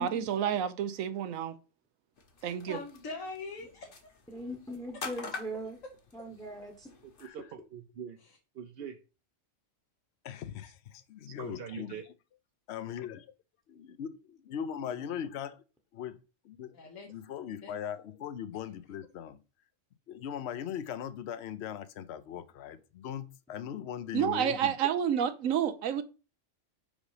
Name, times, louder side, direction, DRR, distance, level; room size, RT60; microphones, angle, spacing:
voice 1, 0.0-1.5 2.4-2.8 24.1-26.0, right 9 dB, 85° right, 1.1 m, -29 dB
sound 1, 2.2-7.3, left 4 dB, 45° left, 1.1 m, -46 dB
voice 2, 2.4-4.1 8.2-8.4 16.7-17.1 17.6-17.8, left 3 dB, 80° left, 1.5 m, -43 dB
voice 3, 4.3-5.8 6.1-6.9, equal, 5° left, 0.9 m, -40 dB
voice 4, 7.0-8.2 8.5-9.0 11.4-12.0, right 8 dB, 55° right, 0.8 m, -43 dB
voice 5, 10.2-12.0 12.7-13.3 13.7-15.6 15.9-16.2 16.4-16.8 17.0-19.4 20.1-24.8, left 9 dB, 60° left, 0.9 m, -39 dB
5.3 x 5.1 x 4.9 m
omnidirectional pair, 1.3 m